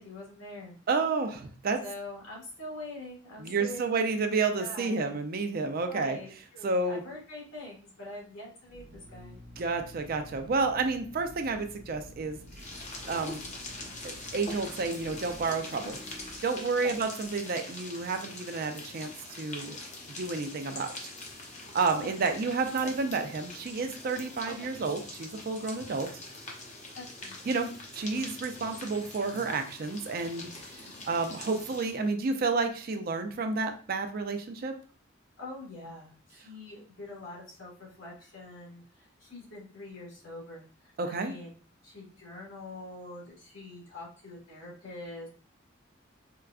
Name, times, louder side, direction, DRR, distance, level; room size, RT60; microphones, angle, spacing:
voice 1, 0.0-0.7 1.8-5.2 5.9-9.4 15.8-16.0 16.8-16.9 21.9-22.2 22.8-22.9 24.5-24.7 26.9-27.4 30.8-31.1 35.4-41.5 41.8-45.3, left 2 dB, 85° left, -4 dB, 1.5 m, -44 dB
voice 2, 0.9-1.8 3.4-6.2 6.6-7.0 9.6-12.4 13.1-13.4 14.0-16.0 16.4-19.8 20.1-21.1 21.7-26.1 27.5-30.5 30.7-34.7 41.0-41.3, right 4 dB, 50° right, 6 dB, 0.4 m, -30 dB
Drill, 8.6-17.2, equal, 70° right, 1.0 m, -50 dB
sound 1, 12.4-32.1, left 2 dB, 35° left, 0.7 m, -44 dB
4.6 x 2.2 x 2.4 m, 0.41 s
head